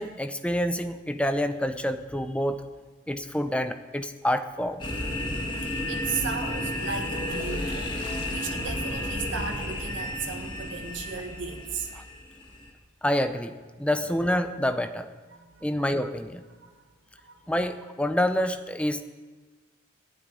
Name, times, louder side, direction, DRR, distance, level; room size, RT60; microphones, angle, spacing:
voice 1, 0.0-2.6 3.1-4.9 11.9-12.0 13.0-15.1 15.6-16.4 17.5-19.0, left 1 dB, 5° left, 9 dB, 0.6 m, -27 dB
sound 1, 4.8-12.7, left 1 dB, 25° left, 1.9 m, -32 dB
voice 2, 5.5-11.9 15.3-15.6 16.6-16.8 17.2-17.4, right 5 dB, 70° right, 3 dB, 1.6 m, -36 dB
12.5 x 9.3 x 9.9 m, 1.4 s
head